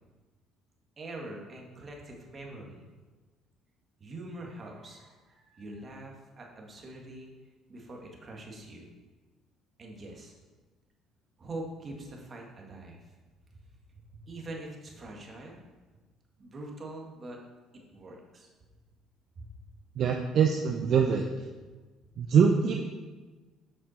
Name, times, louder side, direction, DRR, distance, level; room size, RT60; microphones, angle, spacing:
voice 1, 1.0-2.9 4.0-7.3 7.7-8.9 9.8-10.3 11.4-13.0 14.1-15.6 16.4-17.4 17.9-18.5 19.4-19.5, right 2 dB, 40° right, 0 dB, 1.8 m, -43 dB
voice 2, 20.0-21.2 22.2-22.8, right 6 dB, 60° right, 2 dB, 0.7 m, -23 dB
7.5 x 6.0 x 4.3 m, 1.3 s
supercardioid pair, 90°, 0 cm